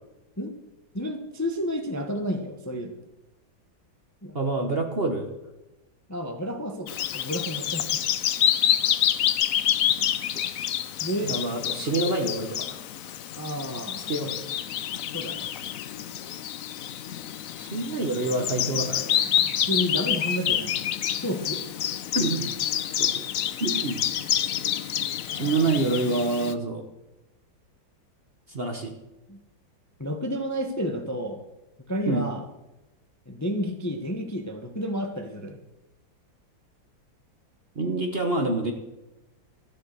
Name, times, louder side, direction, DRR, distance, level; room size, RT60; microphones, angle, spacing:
voice 1, 0.9-2.9 4.2-4.4 6.1-7.9 11.0-11.4 13.4-14.1 15.1-15.5 19.2-20.8 21.2-21.6 25.3-25.7 29.3-29.4 30.0-31.4 31.9-32.4 33.3-35.6, equal, 10° left, 4 dB, 0.8 m, -31 dB
voice 2, 4.3-5.4 11.2-12.7 14.1-14.4 17.6-19.1 22.1-22.5 23.0-23.3 23.6-24.0 25.3-26.9 28.5-28.9 32.1-32.3 37.7-38.7, right 2 dB, 35° right, 4 dB, 1.1 m, -27 dB
Bird vocalization bird call bird song, 6.9-26.5, left 10 dB, 70° left, 0.8 m, -28 dB
13.5 x 10.0 x 6.7 m, 0.98 s
omnidirectional pair, 2.1 m